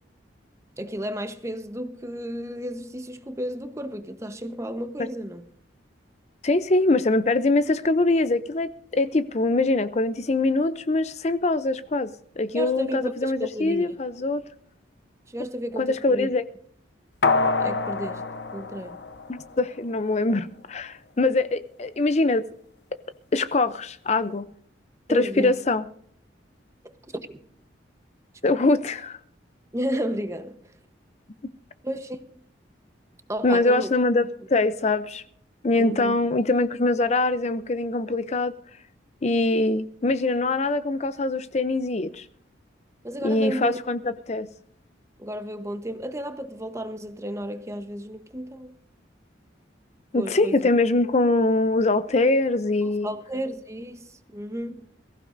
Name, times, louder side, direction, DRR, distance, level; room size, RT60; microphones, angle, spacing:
voice 1, 0.8-5.5 12.5-14.0 15.3-16.3 17.6-18.2 18.5-19.0 25.1-25.5 26.8-27.4 29.7-30.6 31.8-32.2 33.3-33.9 35.8-36.2 43.0-43.8 45.2-48.7 50.1-50.7 52.8-54.9, equal, 15° right, 1.0 m, -33 dB
voice 2, 6.4-12.1 12.4-14.4 15.8-16.4 19.3-22.5 23.3-24.5 25.1-25.9 28.4-29.2 33.4-35.2 35.6-38.5 39.2-42.3 43.2-44.0 44.3-44.5 50.1-53.1, left 2 dB, 35° left, 0.5 m, -23 dB
sound 1, 17.2-19.8 20.1-20.2, left 3 dB, 65° left, 0.9 m, -26 dB
22.0 x 15.0 x 2.6 m
head